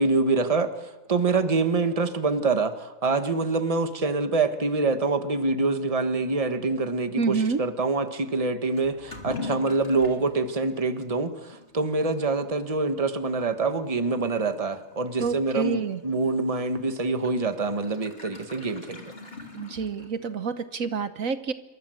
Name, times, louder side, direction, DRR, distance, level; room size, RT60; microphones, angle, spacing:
voice 1, 0.0-19.1, right 3 dB, 25° right, 9 dB, 1.5 m, -25 dB
voice 2, 7.2-7.6 15.2-16.0 19.5-21.5, right 5 dB, 70° right, 11 dB, 1.5 m, -28 dB
Toilet flush / Liquid, 8.8-20.4, left 3 dB, 45° left, 3.1 m, -44 dB
27.5 x 23.5 x 7.8 m, 1.1 s
omnidirectional pair, 1.5 m